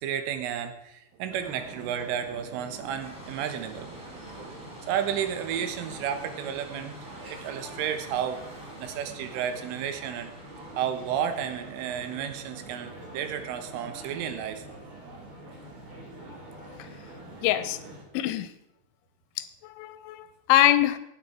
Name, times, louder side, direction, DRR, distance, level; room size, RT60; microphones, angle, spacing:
voice 1, 0.0-7.0 7.3-8.4 8.8-10.3 10.8-14.7, right 9 dB, 85° right, 8 dB, 3.7 m, -32 dB
sound 1, 1.3-18.0, right 1 dB, 45° right, 4.2 m, -45 dB
sound 2, 2.9-17.0, equal, ahead, 2.8 m, -51 dB
voice 2, 17.4-17.8 18.1-18.5 19.4-21.0, left 13 dB, 80° left, 12 dB, 3.0 m, -24 dB
17.0 x 9.7 x 4.4 m, 0.84 s
omnidirectional pair, 5.6 m